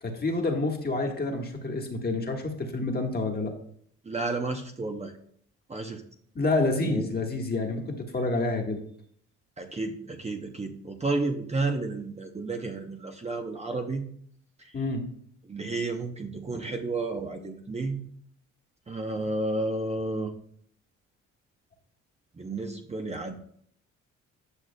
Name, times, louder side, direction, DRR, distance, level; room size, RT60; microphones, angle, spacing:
voice 1, 0.0-3.5 6.3-8.8 14.7-15.0, left 2 dB, 30° left, 2 dB, 1.5 m, -28 dB
voice 2, 4.0-5.1 5.7-6.0 6.8-7.1 9.6-14.0 15.5-18.0 18.9-20.3 22.4-23.4, right 2 dB, 20° right, 4 dB, 0.7 m, -31 dB
9.9 x 6.0 x 2.2 m, 0.63 s
cardioid pair, 90°, 30 cm